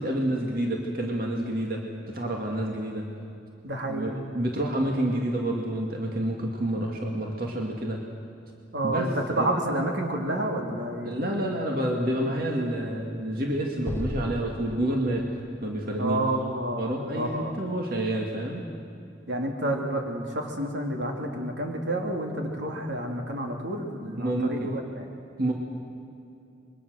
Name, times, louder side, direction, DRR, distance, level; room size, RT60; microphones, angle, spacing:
voice 1, 0.0-3.1 3.9-8.0 8.8-9.5 11.0-15.3 15.6-16.2 16.8-18.6 24.2-24.7 25.4-25.5, right 1 dB, 50° right, 0 dB, 2.2 m, -28 dB
voice 2, 3.6-4.3 8.7-9.1 9.4-11.1 16.0-17.6 19.3-25.1, right 1 dB, 80° right, 1 dB, 3.0 m, -29 dB
Explosion, 13.9-17.1, left 1 dB, 15° left, 0.6 m, -37 dB
26.0 x 23.0 x 6.5 m, 2.6 s
head